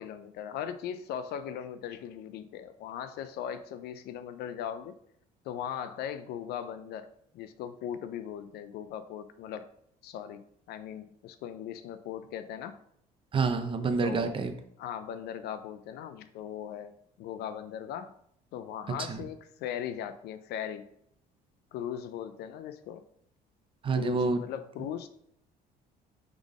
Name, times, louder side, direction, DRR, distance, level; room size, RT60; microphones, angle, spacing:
voice 1, 0.0-4.9 5.4-7.1 7.3-9.7 10.0-12.8 14.0-14.3 14.8-16.9 17.2-18.1 18.5-20.8 21.7-23.0 24.0-25.1, left 9 dB, 75° left, 11 dB, 0.4 m, -39 dB
voice 2, 13.3-14.5 19.1-19.2 23.8-24.4, right 4 dB, 30° right, 8 dB, 0.5 m, -28 dB
3.6 x 3.6 x 3.6 m, 0.70 s
cardioid pair, 110°, 17 cm